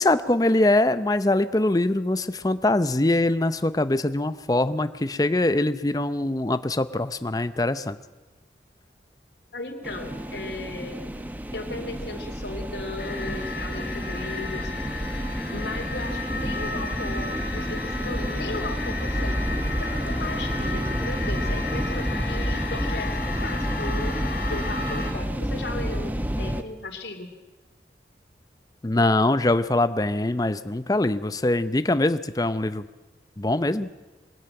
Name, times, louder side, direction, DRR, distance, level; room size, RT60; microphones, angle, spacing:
voice 1, 0.0-8.0 28.8-32.8 33.4-33.9, left 2 dB, 20° left, 12 dB, 0.6 m, -23 dB
voice 2, 9.5-11.0 11.5-14.7 15.5-24.2 24.5-27.3, left 2 dB, 75° left, 4 dB, 2.7 m, -36 dB
sound 1, 9.8-26.6, equal, 10° right, 0.8 m, -30 dB
sound 2, 13.0-25.1, left 3 dB, 55° left, 3.7 m, -34 dB
22.5 x 13.5 x 8.9 m, 1.2 s
head